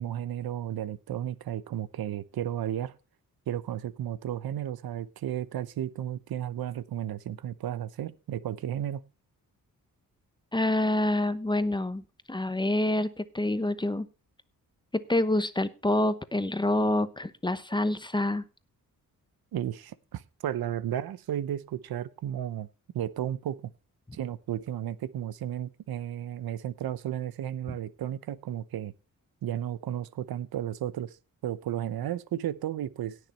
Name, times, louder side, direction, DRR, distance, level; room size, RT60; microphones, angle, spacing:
voice 1, 0.0-2.9 3.5-9.0 19.5-22.7 22.9-23.6 24.1-28.9 29.4-31.2 31.4-33.2, right 11 dB, 75° right, 17 dB, 0.9 m, -33 dB
voice 2, 10.5-12.0 12.3-14.1 14.9-18.4, left 1 dB, 10° left, 13 dB, 0.9 m, -27 dB
17.5 x 6.5 x 4.3 m, 0.31 s
cardioid pair, 85°, 36 cm